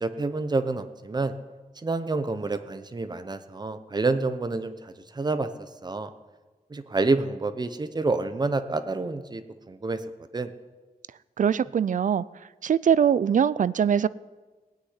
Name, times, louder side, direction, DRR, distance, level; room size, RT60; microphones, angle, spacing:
voice 1, 0.0-1.3 1.8-5.5 5.8-6.1 6.7-10.0 10.3-10.5, right 3 dB, 25° right, 10 dB, 0.8 m, -28 dB
voice 2, 11.4-12.3 12.6-14.1, right 8 dB, 55° right, 19 dB, 0.4 m, -22 dB
17.5 x 6.6 x 9.6 m, 1.3 s
wide cardioid pair, 160°, 16 cm